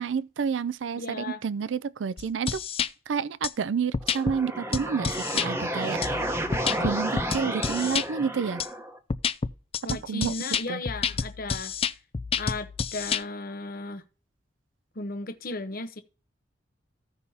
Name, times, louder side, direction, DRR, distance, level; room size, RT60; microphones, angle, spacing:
voice 1, 0.0-2.6 3.1-6.4 6.8-8.6 9.9-10.3 10.7-10.8, right 6 dB, 75° right, 0.4 m, -30 dB
voice 2, 1.0-1.4 9.8-11.7 12.4-14.0 15.0-16.0, left 3 dB, 50° left, 0.9 m, -35 dB
sound 1, 2.2-2.9 3.4-3.5 3.9-4.4 4.7-5.5 6.0-8.1 8.6-8.7 9.1-13.2, left 6 dB, 30° left, 0.4 m, -29 dB
sound 2, 4.0-9.0, right 1 dB, 15° right, 0.9 m, -31 dB
15.5 x 5.5 x 2.8 m
head